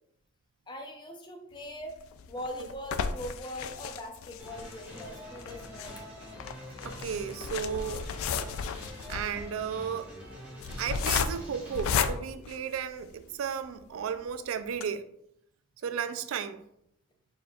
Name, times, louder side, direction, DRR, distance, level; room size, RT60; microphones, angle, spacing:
voice 1, 0.7-1.9 2.3-6.0, equal, 20° left, 0.5 m, -41 dB
sound 1, 1.9-13.3 13.8-13.9 14.2-14.3 14.7-14.8, left 6 dB, 85° left, 0.3 m, -34 dB
sound 2, 4.4-12.1, equal, 10° right, 1.4 m, -45 dB
voice 2, 6.8-8.0 8.4-10.1 10.8-15.0 15.8-16.6, right 7 dB, 85° right, 0.3 m, -34 dB
4.4 x 4.1 x 2.3 m
head